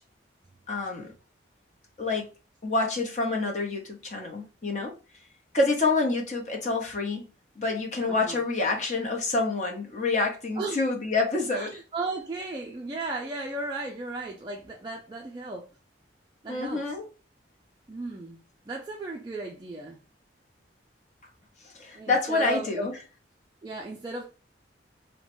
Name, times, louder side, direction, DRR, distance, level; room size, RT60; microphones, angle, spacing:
voice 1, 0.7-1.1 2.0-2.3 2.6-4.9 5.5-7.2 7.6-11.8 16.5-17.1 21.8-22.9, left 3 dB, 40° left, 0.7 m, -27 dB
voice 2, 8.1-8.4 10.6-10.8 11.5-15.7 16.4-16.8 17.9-18.4 18.7-20.0 21.9-22.9 23.6-24.3, right 3 dB, 20° right, 0.3 m, -35 dB
3.0 x 2.1 x 2.9 m
head